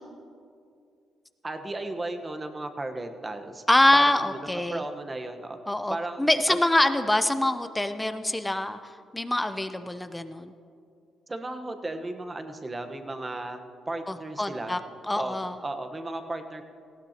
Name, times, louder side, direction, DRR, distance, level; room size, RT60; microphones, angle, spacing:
voice 1, 1.4-3.6 3.9-5.6 5.9-6.6 11.3-13.6 13.9-14.8 15.2-15.4 15.6-16.6, right 2 dB, 25° right, 6 dB, 1.1 m, -35 dB
voice 2, 3.7-4.8 5.7-10.5 14.1-15.6, left 1 dB, 10° left, 10 dB, 0.6 m, -25 dB
18.5 x 16.0 x 2.9 m, 2.3 s
cardioid pair, 90°, 0 cm